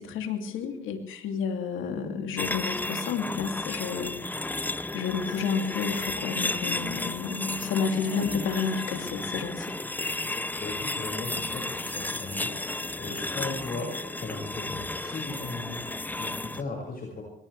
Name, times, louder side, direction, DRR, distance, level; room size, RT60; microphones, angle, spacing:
voice 1, 0.0-4.1 4.9-9.7, left 6 dB, 85° left, 5 dB, 2.7 m, -31 dB
sound 1, 2.4-16.6, left 2 dB, 10° left, 0.5 m, -33 dB
voice 2, 10.6-17.2, left 3 dB, 45° left, 0 dB, 5.9 m, -37 dB
22.0 x 19.5 x 3.3 m, 0.76 s
cardioid pair, 90°, 20 cm